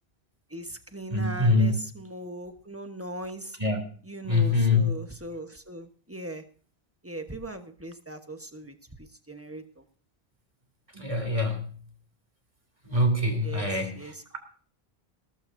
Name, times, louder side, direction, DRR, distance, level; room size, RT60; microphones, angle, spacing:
voice 1, 0.5-3.6 4.0-6.4 7.0-8.7 9.3-9.8 13.4-13.7 13.9-14.2, right 1 dB, 15° right, 7 dB, 1.1 m, -39 dB
voice 2, 1.1-1.8 3.6-3.8 4.2-4.9 10.9-11.7 12.8-14.4, left 2 dB, 30° right, 5 dB, 2.9 m, -24 dB
18.5 x 13.5 x 2.6 m, 0.43 s
omnidirectional pair, 1.1 m